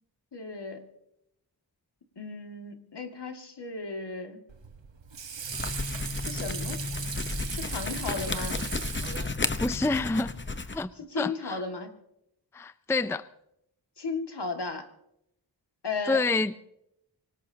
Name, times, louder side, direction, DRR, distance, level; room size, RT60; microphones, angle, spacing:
voice 1, 0.3-0.8 2.2-4.4 6.2-6.8 7.5-8.6 11.0-11.9 14.0-14.9 15.8-16.2, left 4 dB, 65° left, 4 dB, 2.2 m, -35 dB
Water / Sink (filling or washing), 4.5-10.0, right 6 dB, 85° right, 1.4 m, -38 dB
sound 1, 5.5-10.8, left 3 dB, 25° left, 0.9 m, -33 dB
voice 2, 9.6-10.3 10.7-10.9 11.2-11.6 12.5-13.2 16.1-16.6, left 3 dB, 5° left, 14 dB, 0.5 m, -27 dB
25.0 x 18.5 x 2.9 m, 0.80 s
wide cardioid pair, 65°, 43 cm